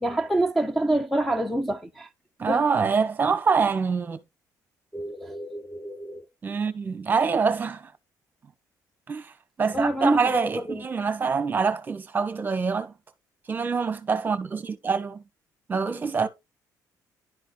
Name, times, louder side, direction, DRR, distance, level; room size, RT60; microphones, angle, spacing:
voice 1, 0.0-2.1 2.5-2.6 4.9-6.3 9.7-10.8, right 1 dB, ahead, 0.7 m, -27 dB
voice 2, 2.4-4.2 6.4-7.9 9.1-9.3 9.6-12.9 13.5-15.2 15.7-16.3, right 5 dB, 25° right, 1.2 m, -25 dB
11.0 x 3.9 x 3.9 m
cardioid pair, 140°, 7 cm